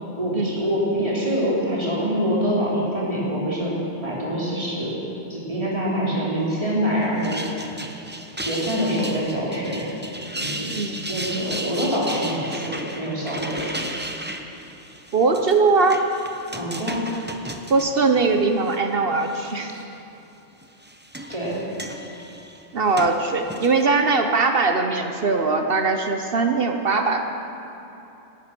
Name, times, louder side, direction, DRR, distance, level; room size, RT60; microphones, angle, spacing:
voice 1, 0.2-5.0 5.3-7.4 8.4-9.9 10.3-10.7 11.1-13.9 16.5-17.1 21.3-21.6, equal, 25° right, -6 dB, 3.9 m, -25 dB
sound 1, 7.0-18.8 19.2-19.8 20.6-23.8, right 1 dB, 10° right, 0.7 m, -35 dB
voice 2, 15.1-16.0 17.7-19.7 22.7-27.3, right 4 dB, 50° right, 5 dB, 1.1 m, -20 dB
17.0 x 13.0 x 6.1 m, 2.9 s
omnidirectional pair, 1.3 m